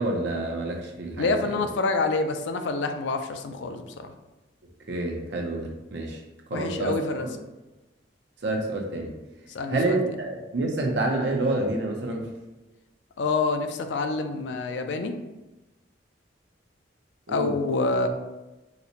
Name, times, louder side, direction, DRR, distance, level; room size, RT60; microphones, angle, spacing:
voice 1, 0.0-1.6 4.9-6.2 6.5-6.9 8.4-9.1 9.7-12.3 17.3-17.5, right 2 dB, 65° right, 1 dB, 0.6 m, -28 dB
voice 2, 1.1-4.1 6.5-7.3 9.5-10.0 13.2-15.2 17.3-18.1, left 3 dB, 70° left, 6 dB, 0.3 m, -27 dB
4.0 x 2.1 x 2.8 m, 1.1 s
head